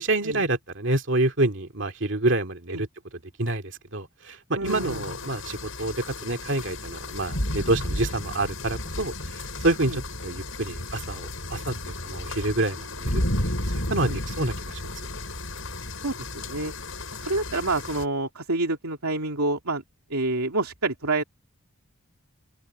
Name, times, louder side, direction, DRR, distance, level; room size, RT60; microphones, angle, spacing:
voice 1, 0.0-2.9 3.4-13.2 13.7-14.9, right 2 dB, 55° right, 2.4 m, -27 dB
voice 2, 4.5-5.0 9.9-10.0 14.0-14.2 16.0-16.7 17.1-19.8 20.1-21.2, right 2 dB, 90° right, 2.9 m, -28 dB
sound 1, 4.6-18.0, left 1 dB, 70° left, 7.9 m, -33 dB
open air
head